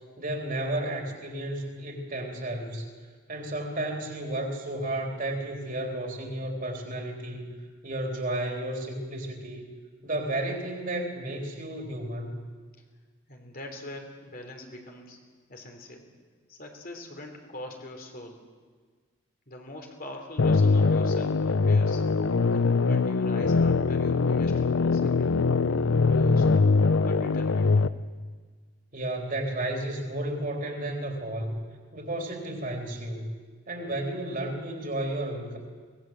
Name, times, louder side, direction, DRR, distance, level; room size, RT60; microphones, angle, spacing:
voice 1, 0.2-2.9 3.3-9.6 10.0-12.4 28.9-31.6 31.9-33.3 33.7-35.6, right 1 dB, 40° right, 2 dB, 3.6 m, -32 dB
voice 2, 13.3-15.2 15.5-16.1 16.5-18.4 19.5-22.0 22.5-25.4 26.0-26.5 27.0-27.7, left 1 dB, 45° left, 3 dB, 3.4 m, -43 dB
sound 1, 20.4-27.9, left 4 dB, 80° left, 0.6 m, -22 dB
24.0 x 19.0 x 7.7 m, 1.5 s
head